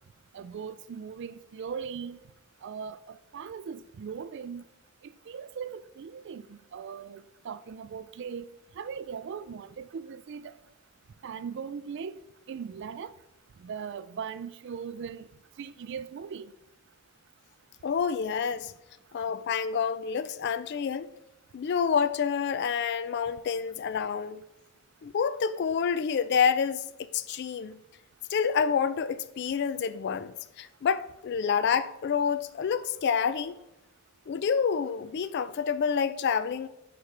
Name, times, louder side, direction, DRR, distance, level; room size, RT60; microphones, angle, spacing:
voice 1, 0.3-2.2 2.6-4.7 5.0-8.5 8.8-10.5 11.2-12.1 12.5-13.1 13.6-15.3 15.6-16.5, right 6 dB, 50° right, 0.3 m, -39 dB
voice 2, 17.8-18.7 19.1-21.1 21.5-24.4 25.0-26.8 27.1-27.8 28.3-33.6 34.3-36.7, left 6 dB, 50° left, 0.3 m, -28 dB
9.0 x 5.0 x 3.3 m
head